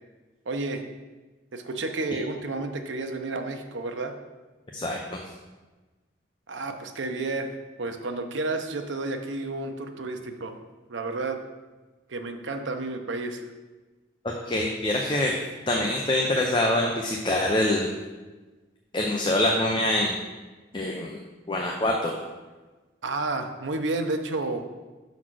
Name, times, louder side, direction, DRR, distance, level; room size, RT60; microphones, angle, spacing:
voice 1, 0.5-0.8 1.5-4.2 6.5-7.5 7.8-10.5 10.9-11.4 12.1-13.4 23.0-24.6, right 2 dB, 85° right, 6 dB, 0.7 m, -31 dB
voice 2, 4.7-5.2 14.4-15.3 15.7-17.9 18.9-20.2 20.7-21.2 21.5-22.2, left 1 dB, 25° left, 0 dB, 0.6 m, -25 dB
6.2 x 4.0 x 6.1 m, 1.2 s
head